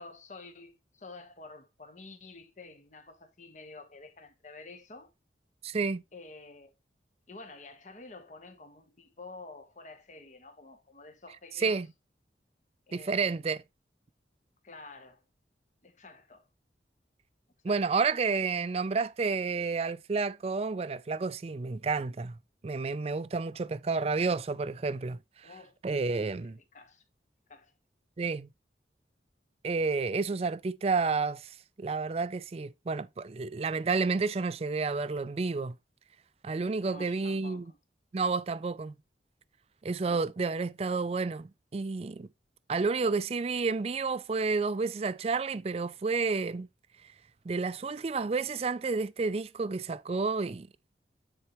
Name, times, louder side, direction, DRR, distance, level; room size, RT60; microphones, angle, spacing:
voice 1, 0.0-5.1 6.1-6.7 7.3-11.8 12.9-13.5 14.6-15.2 15.8-16.5 17.6-17.8 23.5-23.7 25.4-25.8 26.4-27.0 27.5-27.7 36.8-37.8, left 3 dB, 40° left, 1.2 m, -49 dB
voice 2, 5.6-6.0 11.6-11.9 12.9-13.6 17.6-22.4 22.6-25.2 25.8-26.6 28.2-28.5 29.6-35.7 36.4-37.7 38.1-38.9 39.8-42.3 42.7-46.7 47.5-50.7, right 4 dB, 35° right, 0.4 m, -30 dB
9.6 x 4.5 x 3.0 m
head